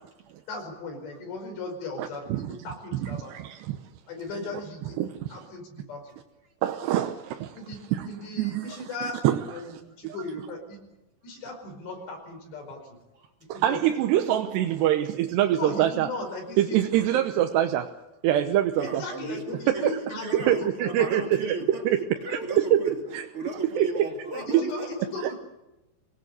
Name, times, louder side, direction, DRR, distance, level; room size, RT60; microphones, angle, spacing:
voice 1, 0.5-3.3 4.1-5.0 5.3-6.2 7.5-9.2 9.5-10.8 11.2-13.0 13.5-13.8 15.5-16.8 17.1-17.2 18.8-21.1 24.3-25.4, left 3 dB, 80° left, 3 dB, 7.3 m, -37 dB
voice 2, 2.0-2.5 2.9-3.8 5.0-5.3 6.6-7.5 7.9-8.1 8.4-8.7 9.2-9.4 10.0-10.2 13.5-16.1 16.6-17.9 18.2-19.0 19.7-19.9 20.3-21.4 21.9-22.0 22.3-22.4 22.7-23.2 23.8-23.9 24.5-24.7, right 12 dB, 80° right, 6 dB, 3.1 m, -24 dB
voice 3, 18.7-25.1, right 1 dB, 35° right, 4 dB, 2.7 m, -36 dB
25.0 x 19.0 x 8.2 m, 0.99 s
omnidirectional pair, 4.9 m